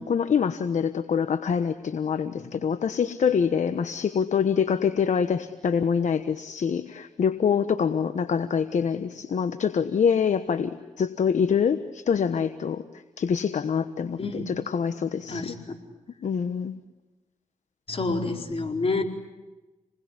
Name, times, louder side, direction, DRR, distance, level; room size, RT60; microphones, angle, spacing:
voice 1, 0.0-15.5 16.2-16.8, left 7 dB, 65° left, 10 dB, 1.2 m, -25 dB
voice 2, 15.3-15.8 17.9-19.0, left 3 dB, 45° left, 2 dB, 4.5 m, -28 dB
28.5 x 20.5 x 9.9 m, 1.1 s
cardioid pair, 50°, 13 cm